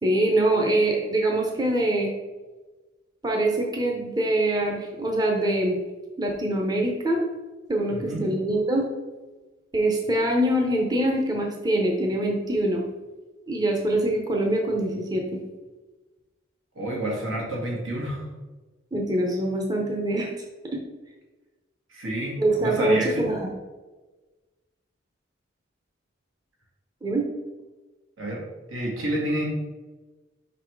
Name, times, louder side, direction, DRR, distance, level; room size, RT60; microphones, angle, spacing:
voice 1, 0.0-2.1 3.2-5.8 6.2-7.2 7.7-8.8 9.7-12.8 13.5-15.4 18.9-20.3 20.7-20.8 22.4-23.5 27.0-27.2, right 1 dB, 20° right, 0 dB, 0.7 m, -24 dB
voice 2, 7.9-8.2 16.8-18.2 21.9-23.2 28.2-28.4 28.7-29.4, right 1 dB, 90° right, -3 dB, 2.0 m, -29 dB
5.2 x 4.1 x 4.6 m, 1.2 s
head